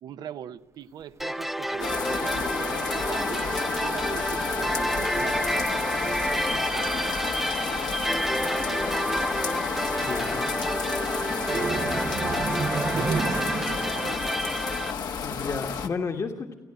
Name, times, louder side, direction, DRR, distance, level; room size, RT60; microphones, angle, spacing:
voice 1, 0.0-7.3 7.7-8.9 11.5-12.4 12.9-14.5, right 9 dB, 80° right, 12 dB, 0.8 m, -41 dB
sound 1, 1.2-14.9, equal, 5° right, 0.5 m, -29 dB
sound 2, 1.8-15.9, left 6 dB, 70° left, 1.4 m, -31 dB
sound 3, 1.9-15.7, right 5 dB, 40° right, 0.8 m, -37 dB
voice 2, 10.0-10.5 15.2-16.5, left 4 dB, 45° left, 3 dB, 1.5 m, -32 dB
29.0 x 11.0 x 8.9 m, 1.3 s
cardioid pair, 100°, 7 cm